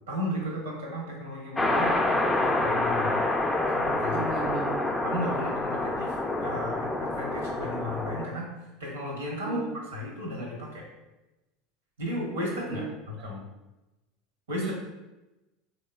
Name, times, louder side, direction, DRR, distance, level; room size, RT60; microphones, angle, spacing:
voice 1, 0.1-2.0 2.4-3.3 3.8-4.3 5.0-10.9 12.0-13.5 14.5-14.7, equal, 85° right, -2 dB, 1.1 m, -34 dB
sound 1, 1.6-8.3, left 2 dB, 15° left, 0.4 m, -27 dB
voice 2, 4.1-4.9 5.2-5.5 9.5-9.7 12.7-12.9 14.6-14.7, right 6 dB, 60° right, 0 dB, 0.3 m, -35 dB
3.4 x 2.9 x 2.3 m, 1.0 s
hypercardioid pair, 85°, 0 cm